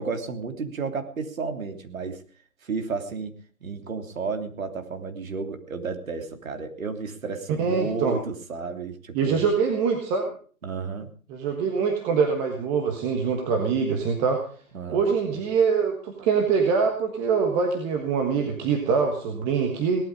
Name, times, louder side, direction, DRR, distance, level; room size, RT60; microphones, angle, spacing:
voice 1, 0.0-2.2 2.6-3.3 3.6-9.5 10.6-11.1 14.7-15.4, right 4 dB, 65° right, 6 dB, 3.3 m, -32 dB
voice 2, 7.6-8.2 9.1-10.3 11.3-14.4 14.9-20.0, right 5 dB, 15° right, 2 dB, 1.4 m, -24 dB
18.0 x 12.5 x 5.1 m, 0.42 s
hypercardioid pair, 155°, 43 cm